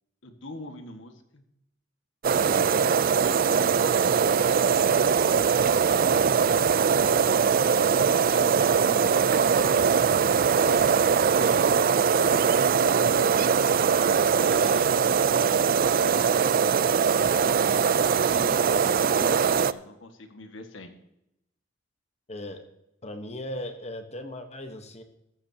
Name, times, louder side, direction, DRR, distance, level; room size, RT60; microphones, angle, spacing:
voice 1, 0.2-1.4 2.4-9.9 10.5-11.8 12.2-14.0 14.4-15.1 15.4-16.5 17.4-20.9, left 2 dB, 85° left, 6 dB, 1.7 m, -44 dB
sound 1, 2.2-19.7, right 6 dB, 50° right, 0.4 m, -22 dB
voice 2, 22.3-22.6 23.0-25.0, left 1 dB, 35° left, 7 dB, 1.1 m, -37 dB
15.0 x 14.0 x 2.9 m, 0.83 s
head